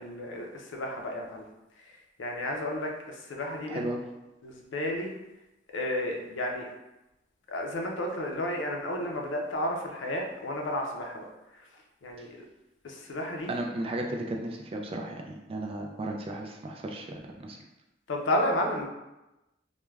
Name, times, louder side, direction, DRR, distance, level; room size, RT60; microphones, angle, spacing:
voice 1, 0.0-1.5 2.2-3.9 4.4-5.1 5.7-6.7 7.5-11.2 12.0-12.4 12.8-13.5 18.1-18.9, left 1 dB, 75° left, 1 dB, 0.5 m, -32 dB
voice 2, 3.7-4.0 13.5-17.6, right 1 dB, 30° right, 1 dB, 0.3 m, -35 dB
2.3 x 2.1 x 3.2 m, 0.98 s
head